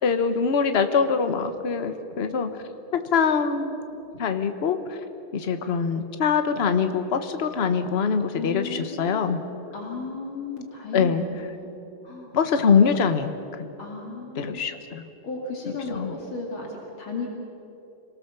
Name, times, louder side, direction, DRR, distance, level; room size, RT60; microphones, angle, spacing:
voice 1, 0.0-2.5 2.9-3.8 4.2-5.0 5.3-9.4 10.9-11.2 12.3-13.7 14.4-15.1 15.9-16.1, left 6 dB, 40° left, 8 dB, 1.0 m, -23 dB
voice 2, 8.3-9.3 9.7-11.7 12.0-12.3 13.8-14.6 15.2-17.3, left 4 dB, 65° left, -1 dB, 3.2 m, -35 dB
26.5 x 19.5 x 6.9 m, 2.9 s
omnidirectional pair, 2.4 m